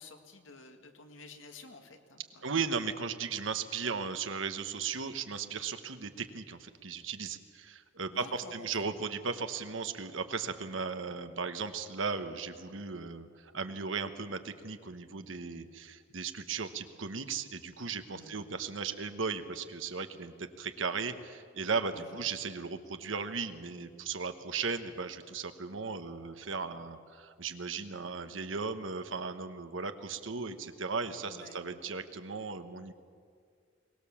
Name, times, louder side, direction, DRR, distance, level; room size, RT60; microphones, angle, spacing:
voice 1, 0.0-2.4 8.1-8.9 18.1-18.4 21.9-22.2 31.2-31.6, left 3 dB, 90° left, 5 dB, 2.1 m, -51 dB
voice 2, 2.4-32.9, right 5 dB, 90° right, 9 dB, 1.2 m, -36 dB
22.5 x 19.0 x 7.2 m, 2.1 s
head